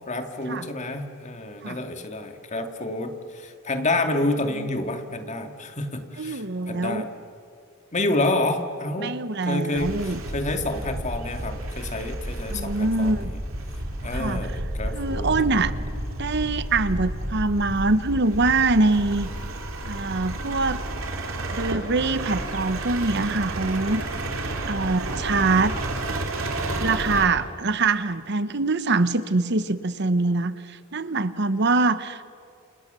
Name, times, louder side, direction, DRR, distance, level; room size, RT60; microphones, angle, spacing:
voice 1, 0.1-7.1 7.9-9.2 9.5-13.4 14.0-15.3 24.8-24.9, left 2 dB, 35° left, 6 dB, 2.3 m, -29 dB
voice 2, 6.2-7.1 9.0-10.2 12.5-13.3 14.1-14.4 14.9-15.7 16.2-19.3 19.8-20.8 21.5-24.0 24.7-25.7 26.8-32.2, right 3 dB, 55° right, 13 dB, 1.0 m, -24 dB
sound 1, 9.7-27.3, right 1 dB, 85° right, 3.3 m, -31 dB
30.0 x 28.0 x 6.9 m, 2.4 s
head